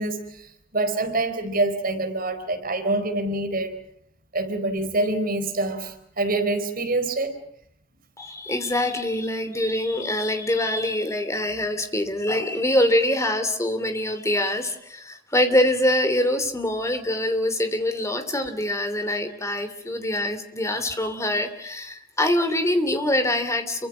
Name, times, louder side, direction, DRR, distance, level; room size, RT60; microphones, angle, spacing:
voice 1, 0.0-3.7 4.3-7.3, right 2 dB, 45° right, 7 dB, 4.2 m, -26 dB
voice 2, 8.2-23.9, left 1 dB, 15° left, 8 dB, 2.9 m, -24 dB
29.5 x 24.0 x 6.2 m, 0.70 s
head